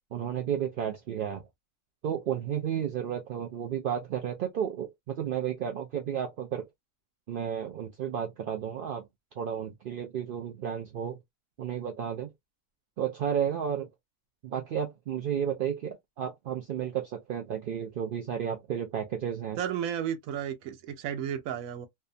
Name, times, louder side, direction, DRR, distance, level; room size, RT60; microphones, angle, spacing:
voice 1, 0.1-1.5 2.0-6.7 7.3-9.1 9.4-11.2 11.6-12.3 13.0-13.9 14.4-19.6, right 9 dB, 65° right, 0.5 m, -32 dB
voice 2, 19.6-21.9, right 9 dB, 85° right, 1.0 m, -33 dB
2.7 x 2.2 x 2.4 m
omnidirectional pair, 1.4 m